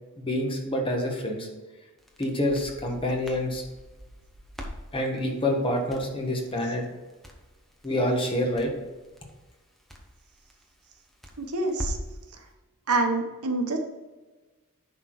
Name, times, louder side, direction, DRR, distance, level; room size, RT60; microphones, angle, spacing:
voice 1, 0.2-1.5 2.2-3.6 4.9-6.8 7.8-8.7, left 1 dB, 25° left, 1 dB, 1.4 m, -27 dB
Crackle, 2.0-12.2, equal, ahead, 1.0 m, -43 dB
voice 2, 11.4-12.0 12.9-13.8, right 3 dB, 80° right, 4 dB, 1.2 m, -26 dB
10.5 x 4.2 x 4.7 m, 1.2 s
head